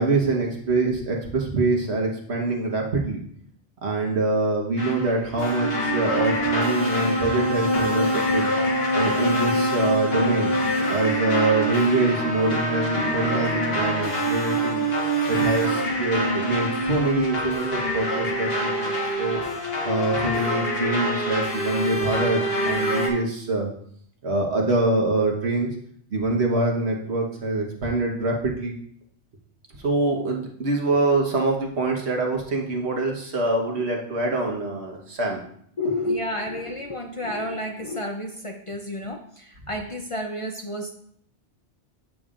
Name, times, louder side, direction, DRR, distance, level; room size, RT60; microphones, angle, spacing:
voice 1, 0.0-3.2 3.8-8.5 8.9-10.5 10.9-14.8 15.3-18.9 19.2-19.4 19.8-23.7 24.2-25.7 26.1-28.7 29.7-35.4, right 2 dB, 70° right, 0 dB, 1.5 m, -24 dB
sound 1, 4.8-23.1, equal, 60° left, 1.5 m, -25 dB
voice 2, 35.8-40.9, left 1 dB, 35° left, 2 dB, 0.6 m, -30 dB
8.6 x 6.9 x 2.5 m, 0.65 s
omnidirectional pair, 1.1 m